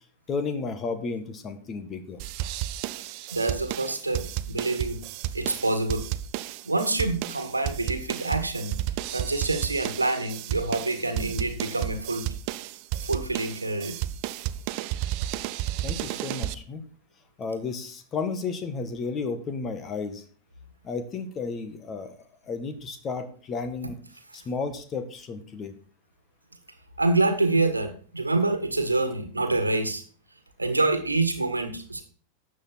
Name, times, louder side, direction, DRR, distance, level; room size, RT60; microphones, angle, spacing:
voice 1, 0.3-2.2 15.8-16.8 17.4-20.2 20.8-22.2 22.5-24.0 24.3-25.7, left 4 dB, 25° left, 10 dB, 1.8 m, -33 dB
sound 1, 2.2-16.6, right 13 dB, 45° right, 0.6 m, -32 dB
voice 2, 3.3-5.0 5.3-6.0 6.7-8.8 9.1-12.2 13.0-14.0 27.0-30.0 30.6-32.0, right 2 dB, 80° right, 8 dB, 1.7 m, -26 dB
12.5 x 7.7 x 4.3 m, 0.43 s
figure-of-eight pair, 90°, 0 cm